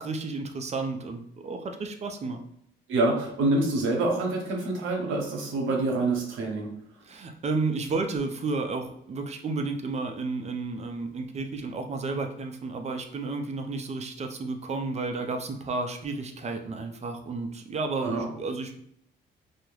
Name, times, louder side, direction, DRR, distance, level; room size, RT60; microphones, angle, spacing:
voice 1, 0.0-2.4 7.0-18.8, right 3 dB, 35° right, 5 dB, 0.4 m, -32 dB
voice 2, 2.9-6.7 18.0-18.2, right 2 dB, 85° right, 0 dB, 0.8 m, -26 dB
2.3 x 2.1 x 3.1 m, 0.71 s
cardioid pair, 90°, 20 cm